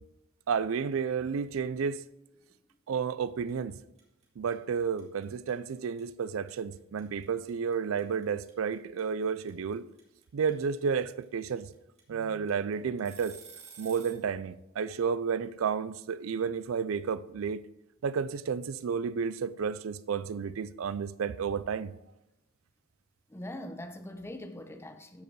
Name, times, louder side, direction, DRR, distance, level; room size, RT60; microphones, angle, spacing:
voice 1, 0.5-2.0 2.9-3.8 4.4-9.9 10.3-11.7 12.1-13.4 13.8-17.6 18.0-21.9, right 6 dB, 80° right, 0.4 m, -31 dB
sound 1, 3.0-3.2 3.5-14.2, right 6 dB, 35° right, 2.6 m, -51 dB
voice 2, 23.3-25.2, left 1 dB, 10° left, 0.7 m, -42 dB
13.5 x 5.0 x 4.7 m
head